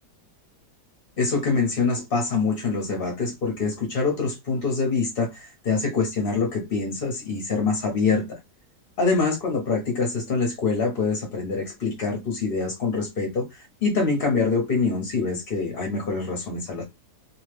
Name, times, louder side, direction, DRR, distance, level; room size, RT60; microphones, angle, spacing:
voice 1, 1.2-8.4 9.0-16.8, left 4 dB, 50° left, 0.7 m, -25 dB
2.8 x 2.5 x 3.2 m
omnidirectional pair, 1.8 m